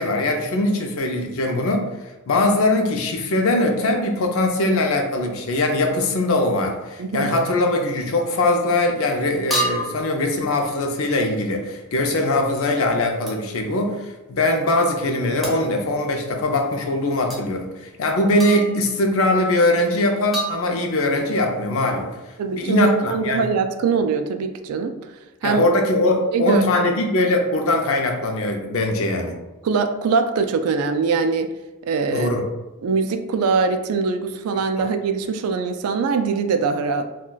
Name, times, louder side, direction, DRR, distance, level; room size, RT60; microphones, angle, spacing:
voice 1, 0.0-1.9 2.3-22.1 22.5-23.5 25.4-29.3 32.1-32.4, left 2 dB, 60° left, 3 dB, 0.5 m, -21 dB
voice 2, 7.0-7.3 22.4-24.9 25.4-25.6 26.3-26.9 29.6-31.5 31.9-32.3 32.8-37.1, right 5 dB, 75° right, 7 dB, 0.3 m, -22 dB
sound 1, 8.2-8.4 9.5-10.1 13.3-13.5 15.4-15.7 17.3-17.4 18.4-18.9 20.3-21.1, right 1 dB, ahead, 0.5 m, -28 dB
2.3 x 2.2 x 3.8 m, 1.0 s
head